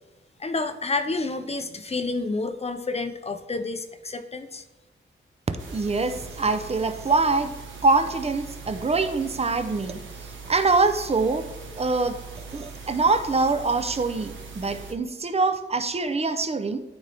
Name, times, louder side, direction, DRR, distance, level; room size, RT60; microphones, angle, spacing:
voice 1, 0.4-4.6, left 3 dB, 30° left, 8 dB, 0.7 m, -29 dB
sound 1, 5.6-14.9, right 4 dB, 75° right, 1.4 m, -41 dB
voice 2, 5.7-7.5 7.8-10.0 10.5-11.5 11.8-12.2 12.5-16.8, right 3 dB, 30° right, 8 dB, 0.7 m, -24 dB
13.0 x 4.4 x 3.5 m, 1.1 s
wide cardioid pair, 140°, 20 cm